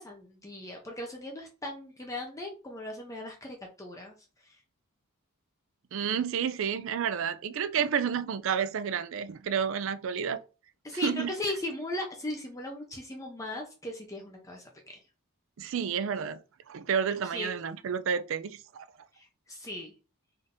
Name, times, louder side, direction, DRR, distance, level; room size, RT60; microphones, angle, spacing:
voice 1, 0.0-4.1 4.5-4.6 10.8-15.0 17.3-17.5 19.1-19.9, left 1 dB, 15° left, 0.6 m, -38 dB
voice 2, 5.9-10.4 10.9-11.3 15.6-16.4 16.7-18.9, right 7 dB, 60° right, 0.4 m, -30 dB
3.8 x 2.6 x 3.5 m
head